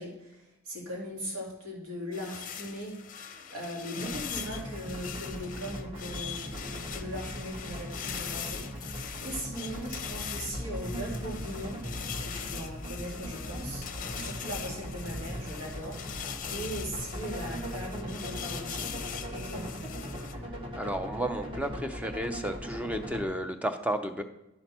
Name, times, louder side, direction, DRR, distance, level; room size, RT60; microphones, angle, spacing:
voice 1, 0.0-11.8 12.2-19.0 19.3-19.7, equal, 85° right, -3 dB, 2.5 m, -39 dB
sound 1, 2.1-20.3, left 8 dB, 40° left, 0.6 m, -41 dB
sound 2, 4.0-23.2, equal, 25° right, 1.3 m, -39 dB
voice 2, 20.7-24.2, right 1 dB, 5° right, 7 dB, 0.5 m, -32 dB
11.0 x 6.3 x 4.3 m, 0.95 s
head